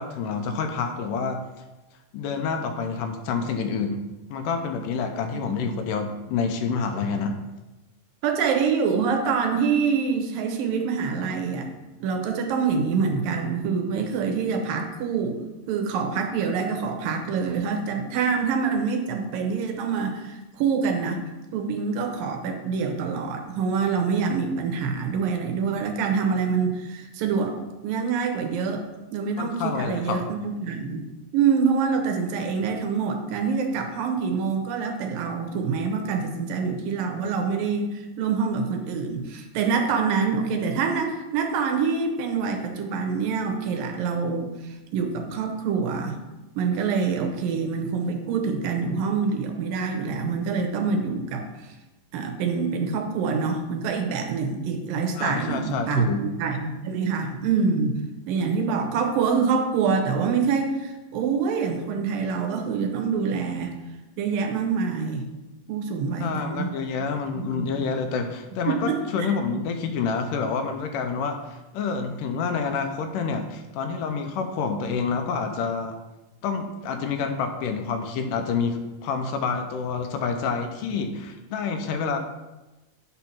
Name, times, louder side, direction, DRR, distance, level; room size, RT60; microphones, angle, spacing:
voice 1, 0.0-1.4 2.1-4.0 4.3-7.4 29.4-30.2 55.2-56.2 66.2-76.0 76.4-82.2, left 5 dB, 80° left, 6 dB, 2.1 m, -28 dB
voice 2, 5.3-5.7 8.2-11.7 12.0-21.2 21.5-27.5 27.8-28.9 29.1-31.0 31.3-46.2 46.6-51.8 52.1-56.1 56.4-57.9 58.3-63.7 64.2-65.3 65.7-66.7 67.0-67.1 67.4-67.9 68.7-69.3, right 5 dB, 85° right, 4 dB, 2.6 m, -26 dB
9.0 x 4.2 x 5.7 m, 1.1 s
omnidirectional pair, 4.0 m